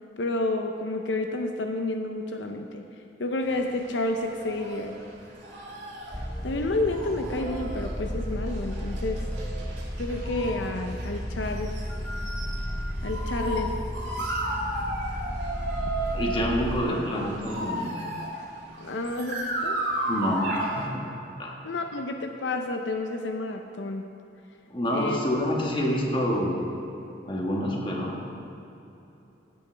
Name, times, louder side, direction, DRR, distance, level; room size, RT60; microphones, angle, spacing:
voice 1, 0.2-2.8 3.2-5.0 6.4-9.2 10.0-11.8 13.0-13.8 18.8-19.8 21.6-24.1 24.9-25.2, left 2 dB, 85° left, 4 dB, 0.7 m, -30 dB
sound 1, 3.4-20.9, right 1 dB, 80° right, 2.6 m, -34 dB
sound 2, 6.1-16.8, equal, 5° left, 0.5 m, -33 dB
voice 2, 16.1-18.0 20.1-21.0 21.4-21.5 24.7-26.7 27.3-28.2, equal, 30° left, -1 dB, 1.5 m, -27 dB
16.5 x 8.7 x 3.4 m, 2.9 s
head